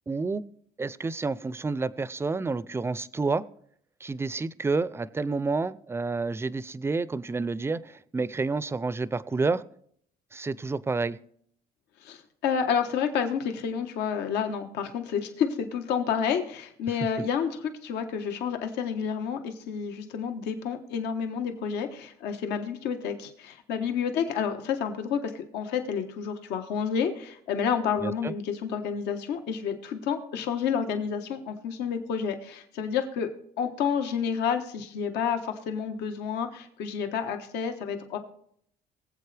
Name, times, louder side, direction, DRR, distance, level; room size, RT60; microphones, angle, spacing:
voice 1, 0.1-0.4 0.8-3.4 4.0-9.6 10.3-11.2 28.0-28.3, right 3 dB, 15° right, 18 dB, 0.4 m, -29 dB
voice 2, 12.0-33.3 33.6-38.2, left 7 dB, 85° left, 6 dB, 1.2 m, -30 dB
22.0 x 7.8 x 3.3 m, 0.67 s
cardioid pair, 110°, 17 cm